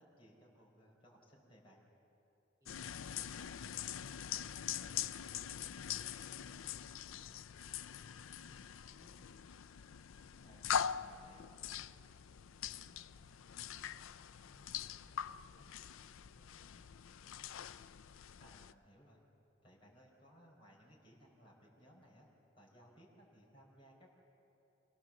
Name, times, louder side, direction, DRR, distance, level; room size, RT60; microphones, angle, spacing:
voice 1, 0.0-1.8 10.4-11.4 18.4-19.2 19.6-22.3 22.6-24.1, equal, 25° left, -3 dB, 4.8 m, -62 dB
sound 1, 2.7-18.7, left 9 dB, 80° left, 0.4 m, -43 dB
voice 2, 11.6-12.5 12.7-17.0, equal, 15° right, 0 dB, 3.0 m, -71 dB
26.5 x 17.5 x 7.5 m, 2.9 s
head